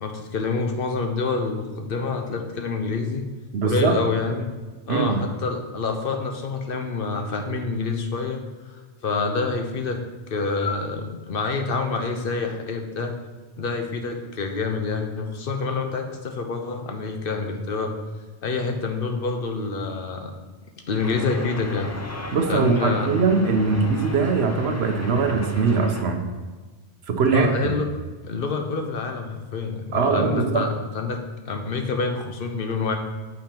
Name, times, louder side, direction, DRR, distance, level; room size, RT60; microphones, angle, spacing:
voice 1, 0.0-3.2 3.6-4.5 4.9-8.4 9.0-10.0 10.3-13.1 13.6-17.9 18.4-20.3 20.9-21.9 22.5-23.1 27.3-27.9 28.2-33.0, left 4 dB, 60° left, 5 dB, 1.0 m, -27 dB
voice 2, 3.5-4.0 4.9-5.2 22.3-26.3 27.1-27.5 29.9-30.7, right 5 dB, 70° right, 5 dB, 1.1 m, -21 dB
sound 1, 21.0-26.0, left 1 dB, 25° left, 0.3 m, -36 dB
7.5 x 5.5 x 4.4 m, 1.3 s
omnidirectional pair, 1.1 m